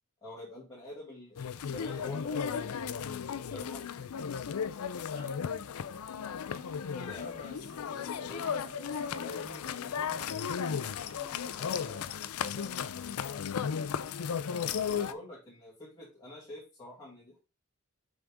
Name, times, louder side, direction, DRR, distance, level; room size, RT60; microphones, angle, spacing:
voice 1, 0.2-2.9 3.5-4.0 6.9-7.4 7.9-8.7 14.6-17.4, left 1 dB, 15° left, 2.1 m, -47 dB
sound 1, 1.4-15.1, left 7 dB, 75° left, 0.4 m, -35 dB
voice 2, 5.1-5.8 7.1-12.8, equal, 35° left, 3.2 m, -50 dB
6.1 x 4.9 x 3.5 m
head